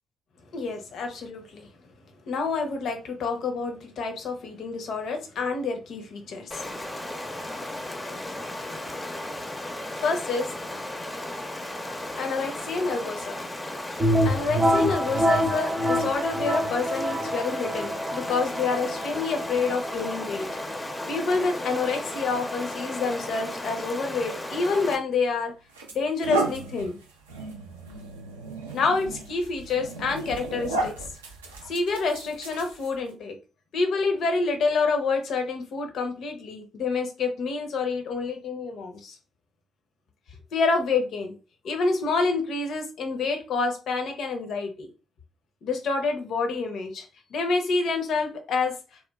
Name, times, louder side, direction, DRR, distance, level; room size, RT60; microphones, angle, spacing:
voice 1, 0.5-1.7 2.3-6.7 7.5-7.7 8.5-8.9 10.0-10.5 12.2-13.4 14.2-20.5 21.1-25.5 25.9-27.0 28.7-30.9 31.6-33.4 33.7-39.2 40.5-41.3 41.6-44.9 45.6-47.0 47.3-48.8, left 4 dB, 60° left, 4 dB, 0.6 m, -28 dB
Stream, 6.5-25.0, left 1 dB, 20° left, 0.6 m, -35 dB
sound 1, 14.0-23.6, equal, 35° right, 0.7 m, -27 dB
sound 2, 25.1-25.2 25.7-33.1, right 3 dB, 85° right, 0.4 m, -34 dB
3.0 x 2.1 x 2.2 m, 0.32 s
hypercardioid pair, 40°, 0 cm